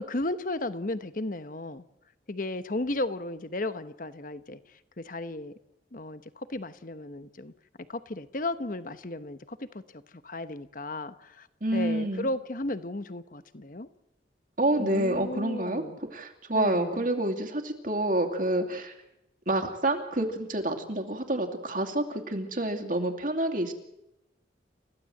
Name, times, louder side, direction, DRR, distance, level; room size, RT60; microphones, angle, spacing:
voice 1, 0.0-1.8 2.3-4.6 5.0-5.5 5.9-7.5 7.9-11.5 11.7-13.9 14.8-16.0 16.5-17.1, left 2 dB, 50° left, 12 dB, 1.1 m, -34 dB
voice 2, 11.6-12.3 14.6-19.0 19.5-23.7, right 1 dB, 50° right, 3 dB, 2.6 m, -28 dB
29.5 x 15.5 x 7.9 m, 0.90 s
head